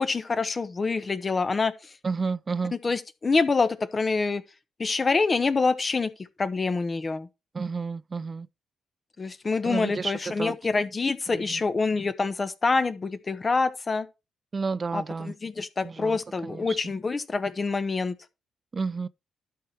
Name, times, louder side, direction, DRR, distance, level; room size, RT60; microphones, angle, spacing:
voice 1, 0.0-1.7 2.8-4.4 4.8-6.1 6.4-7.3 9.2-14.1 14.9-18.1, left 4 dB, 40° left, 1.1 m, -26 dB
voice 2, 2.0-2.7 7.5-8.5 9.7-10.5 11.3-11.6 14.5-15.3 15.8-16.8 18.7-19.1, right 4 dB, 40° right, 0.4 m, -31 dB
12.0 x 4.4 x 4.5 m
hypercardioid pair, 45°, 0 cm